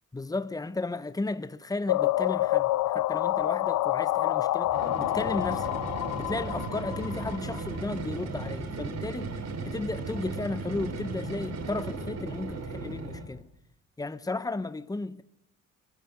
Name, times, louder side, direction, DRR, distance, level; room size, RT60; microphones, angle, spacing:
voice 1, 0.1-5.7 6.1-9.3 9.6-13.5 14.0-15.2, left 2 dB, 10° left, 1.1 m, -34 dB
sound 1, 1.9-7.6, left 16 dB, 85° left, 0.8 m, -27 dB
sound 2, 4.6-13.4, right 3 dB, 60° right, 5.6 m, -36 dB
25.0 x 15.5 x 9.7 m
cardioid pair, 90°, 30 cm